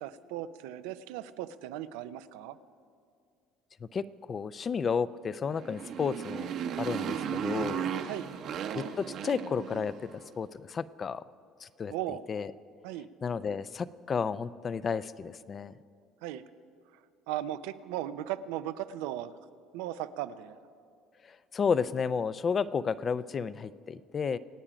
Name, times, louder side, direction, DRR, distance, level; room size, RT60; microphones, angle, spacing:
voice 1, 0.0-2.6 8.1-8.3 11.9-12.2 12.8-13.1 16.2-16.4 17.3-19.3 19.7-20.6, right 13 dB, 85° right, 12 dB, 0.5 m, -37 dB
voice 2, 3.9-6.5 6.8-7.9 8.7-11.2 11.6-11.9 12.3-12.5 13.2-15.7 21.3-24.4, left 6 dB, 35° left, 17 dB, 0.5 m, -32 dB
Motorcycle, 5.5-10.2, right 8 dB, 60° right, 1.0 m, -35 dB
26.0 x 8.8 x 5.1 m, 2.3 s
cardioid pair, 110°, 0 cm